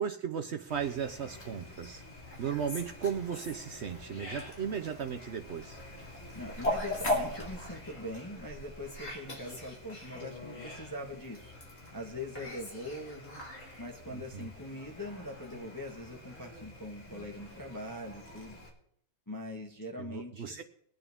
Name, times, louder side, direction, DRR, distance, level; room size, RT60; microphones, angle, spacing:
voice 1, 0.0-2.0 2.4-5.8 14.1-14.5 20.0-20.6, right 7 dB, 90° right, 7 dB, 0.6 m, -36 dB
Fowl, 0.7-18.7, left 1 dB, 40° left, 3.1 m, -41 dB
voice 2, 6.3-11.5 11.9-13.4 13.8-18.6 19.3-20.6, left 1 dB, 10° left, 0 dB, 1.3 m, -42 dB
22.5 x 9.0 x 3.6 m, 0.71 s
omnidirectional pair, 2.0 m